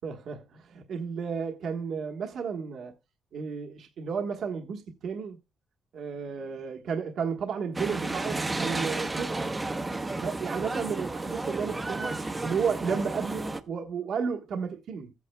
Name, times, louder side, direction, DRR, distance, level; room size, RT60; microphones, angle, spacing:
voice 1, 0.0-2.9 3.3-5.4 5.9-9.5 10.2-12.1 12.4-15.1, right 6 dB, 65° right, 1.3 m, -33 dB
sound 1, 7.7-13.6, right 2 dB, 15° right, 0.9 m, -32 dB
15.0 x 8.4 x 2.2 m
cardioid pair, 130°, 0 cm